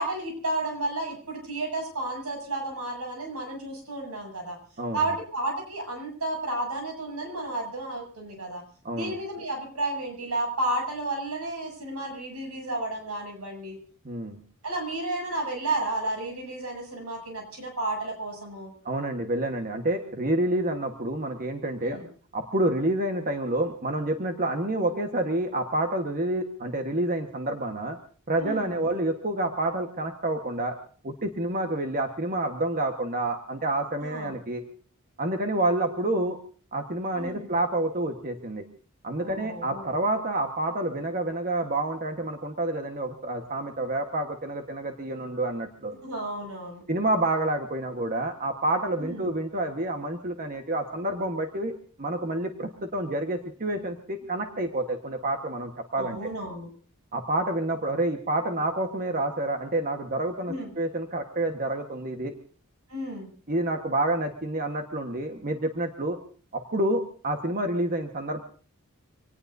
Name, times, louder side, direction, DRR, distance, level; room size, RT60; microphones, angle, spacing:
voice 1, 0.0-4.6 4.9-8.6 8.9-13.8 14.6-18.7 21.8-22.1 28.4-28.7 34.0-34.4 37.1-37.5 39.2-39.9 46.0-46.8 49.0-49.3 56.0-56.7 60.5-60.7 62.9-63.3, right 2 dB, 90° right, 2 dB, 7.8 m, -32 dB
voice 2, 8.8-9.2 14.0-14.4 18.8-22.0 22.3-28.0 28.3-30.7 31.0-34.6 35.2-36.4 36.7-38.6 39.0-45.9 46.9-51.7 52.0-56.2 57.1-62.4 63.5-66.2 66.5-68.4, right 1 dB, 40° right, 5 dB, 1.4 m, -28 dB
26.0 x 18.5 x 2.7 m, 0.42 s
head